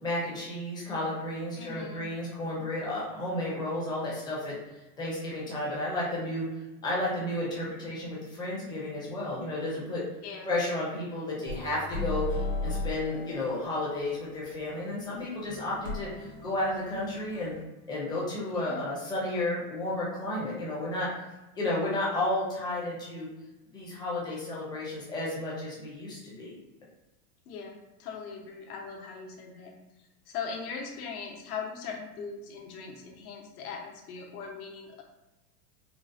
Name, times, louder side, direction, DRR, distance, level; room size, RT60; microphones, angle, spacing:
voice 1, 0.0-4.5 5.0-6.5 6.8-10.0 10.5-12.3 12.6-17.5 17.9-21.1 21.6-23.3 23.7-26.5, left 1 dB, 10° left, -6 dB, 0.4 m, -32 dB
voice 2, 1.6-2.0 10.2-10.5 18.4-18.9 27.4-29.7 30.0-35.0, left 5 dB, 70° left, 1 dB, 0.9 m, -40 dB
sound 1, 11.5-17.6, left 2 dB, 45° left, 0.9 m, -37 dB
3.8 x 2.1 x 2.5 m, 1.1 s
supercardioid pair, 155°, 46 cm